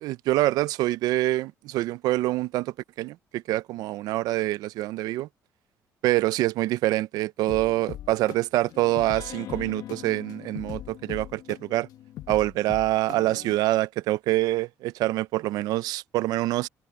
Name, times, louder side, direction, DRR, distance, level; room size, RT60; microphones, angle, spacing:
voice 1, 0.0-5.3 6.0-11.9 12.3-16.7, right 17 dB, 80° right, 0.6 m, -26 dB
sound 1, 7.5-13.6, left 13 dB, 75° left, 1.1 m, -40 dB
supercardioid pair, 75°, 7 cm